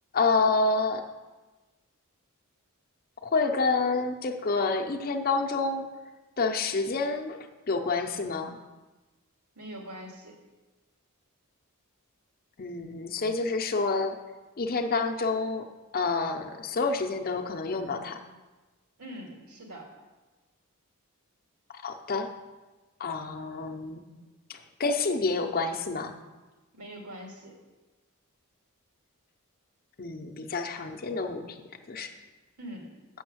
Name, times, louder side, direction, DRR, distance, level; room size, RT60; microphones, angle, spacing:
voice 1, 0.1-1.0 3.2-5.9 6.4-7.4 7.7-8.6 12.6-14.2 14.6-15.7 15.9-18.2 21.8-22.3 23.0-24.0 24.5-26.1 30.0-31.6 31.9-32.1, left 3 dB, 40° left, 5 dB, 0.7 m, -28 dB
voice 2, 9.6-10.4 19.0-19.9 26.7-27.6 32.6-32.9, equal, 90° right, -1 dB, 2.4 m, -43 dB
7.1 x 6.5 x 7.8 m, 1.2 s
head